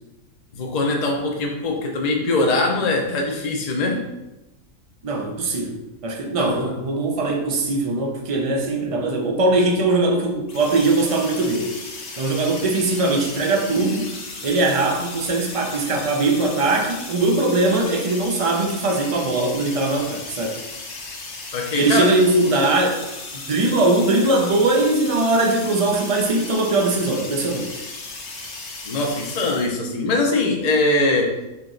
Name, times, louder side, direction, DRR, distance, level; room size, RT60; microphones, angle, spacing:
voice 1, 0.5-4.1 6.4-6.7 21.5-22.1 28.9-31.4, left 2 dB, 40° left, 1 dB, 0.6 m, -22 dB
voice 2, 5.0-11.7 12.2-14.1 14.4-20.6 21.8-23.0 23.3-27.8, right 2 dB, 50° right, 1 dB, 0.4 m, -21 dB
sound 1, 10.5-29.7, left 3 dB, 65° left, 1.2 m, -36 dB
4.4 x 3.0 x 3.8 m, 0.99 s
omnidirectional pair, 1.4 m